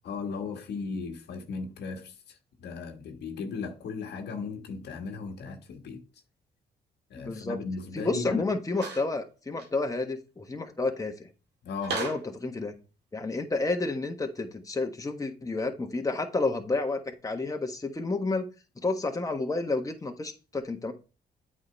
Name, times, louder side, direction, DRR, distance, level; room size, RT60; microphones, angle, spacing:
voice 1, 0.0-6.0 7.1-8.5 11.6-12.0, left 4 dB, 75° left, 1.4 m, -36 dB
voice 2, 7.2-7.6 7.9-11.3 11.9-12.7 13.1-18.5 18.8-20.9, left 3 dB, 20° left, 1.4 m, -30 dB
sound 1, 8.7-9.1 9.6-9.7 11.8-12.3, right 4 dB, 75° right, 2.2 m, -34 dB
8.5 x 4.9 x 3.3 m
supercardioid pair, 60°, 18 cm